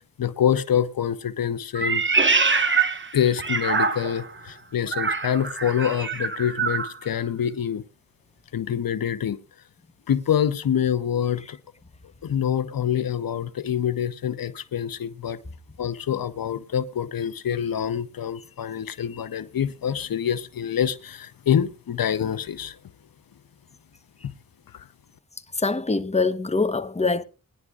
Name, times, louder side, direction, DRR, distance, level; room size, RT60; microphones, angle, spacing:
voice 1, 0.2-2.0 3.1-7.8 8.5-9.4 10.1-11.6 12.2-15.4 15.8-22.8 24.2-24.3 24.7-24.9, left 9 dB, 85° left, 0.7 m, -26 dB
Meow, 1.7-4.3 4.9-6.9, right 4 dB, 35° right, 1.3 m, -24 dB
voice 2, 2.5-3.0 25.6-27.2, left 3 dB, 20° left, 0.9 m, -25 dB
20.5 x 10.5 x 2.4 m
cardioid pair, 60°, 34 cm